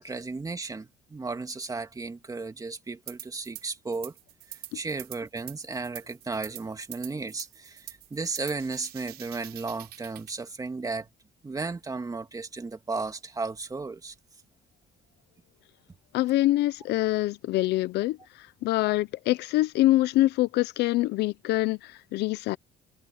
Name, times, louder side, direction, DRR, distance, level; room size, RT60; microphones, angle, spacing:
voice 1, 0.0-4.1 4.5-11.1 11.4-14.1, right 3 dB, 20° right, 2.4 m, -34 dB
sound 1, 3.1-3.6 3.9-10.4, right 14 dB, 75° right, 7.0 m, -45 dB
voice 2, 16.1-18.2 18.6-22.6, left 16 dB, 80° left, 0.7 m, -25 dB
cardioid pair, 110°, 17 cm